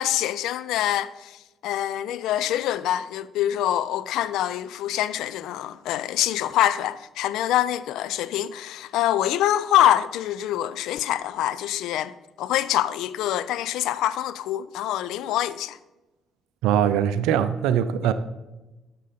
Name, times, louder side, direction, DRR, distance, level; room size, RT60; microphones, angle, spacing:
voice 1, 0.0-12.1 12.4-15.8, left 12 dB, 70° left, 0.4 m, -25 dB
voice 2, 16.6-18.1, right 9 dB, 70° right, 0.4 m, -21 dB
11.0 x 6.7 x 3.8 m
hypercardioid pair, 45°, 0 cm